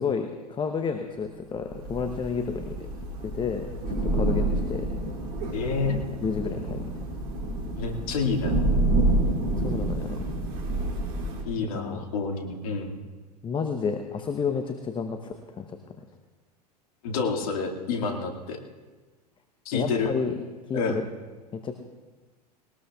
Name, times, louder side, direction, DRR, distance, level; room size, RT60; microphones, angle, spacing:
voice 1, 0.0-2.9 3.2-4.9 6.2-6.8 9.6-10.3 11.7-12.0 13.4-15.8 19.7-20.3 20.7-21.0 21.5-21.8, left 6 dB, 25° left, 6 dB, 1.0 m, -31 dB
Thunder / Rain, 1.7-11.4, right 2 dB, 50° right, 3.0 m, -28 dB
voice 2, 5.5-6.0 7.8-8.6 11.4-12.9 17.0-18.6 19.7-20.1 20.7-21.0, left 4 dB, 60° left, 2 dB, 2.2 m, -28 dB
21.0 x 19.0 x 2.4 m, 1.3 s
figure-of-eight pair, 85°, 21 cm